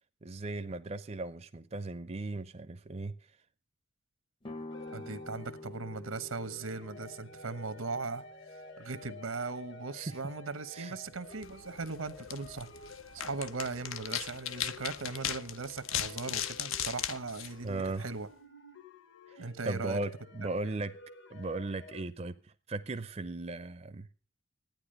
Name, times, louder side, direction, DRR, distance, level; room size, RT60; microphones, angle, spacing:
voice 1, 0.2-3.1 9.9-10.2 10.7-10.9 17.6-18.0 19.3-20.9 21.3-24.1, right 2 dB, 30° right, 0.5 m, -37 dB
sound 1, 4.4-10.2, left 2 dB, 25° left, 0.7 m, -49 dB
sound 2, 4.7-22.0, left 3 dB, 60° left, 1.3 m, -52 dB
voice 2, 4.9-8.2 8.8-12.7 13.1-18.3 19.4-20.0 20.6-20.8, right 4 dB, 85° right, 1.1 m, -39 dB
sound 3, 11.3-18.3, left 10 dB, 75° left, 0.6 m, -38 dB
12.0 x 9.4 x 6.5 m
head